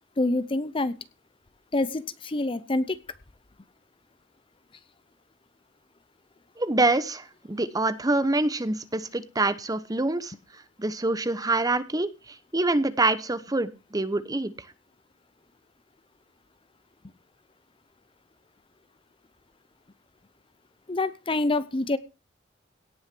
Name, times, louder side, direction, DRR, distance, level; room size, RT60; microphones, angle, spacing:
voice 1, 0.2-1.0 1.7-3.0 20.9-22.0, left 2 dB, 25° left, 15 dB, 0.7 m, -26 dB
voice 2, 6.6-10.4 10.8-14.5, right 2 dB, 20° right, 14 dB, 0.9 m, -26 dB
17.5 x 6.3 x 6.0 m, 0.31 s
head